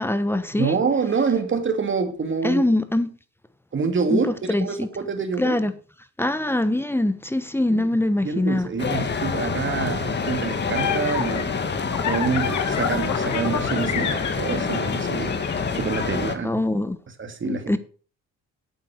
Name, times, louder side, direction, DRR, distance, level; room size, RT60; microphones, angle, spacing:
voice 1, 0.0-0.8 2.4-3.1 4.1-4.2 4.5-4.9 5.4-5.7 6.2-8.7 16.4-17.0 17.5-17.8, left 1 dB, 10° left, 1.1 m, -23 dB
voice 2, 0.5-2.6 3.7-5.6 7.7-7.9 8.2-16.6 17.2-17.8, right 5 dB, 40° right, 2.5 m, -27 dB
sound 1, 8.8-16.3, left 5 dB, 35° left, 1.6 m, -26 dB
sound 2, 10.2-16.0, left 8 dB, 70° left, 1.7 m, -29 dB
8.9 x 7.6 x 6.3 m
cardioid pair, 90°, 30 cm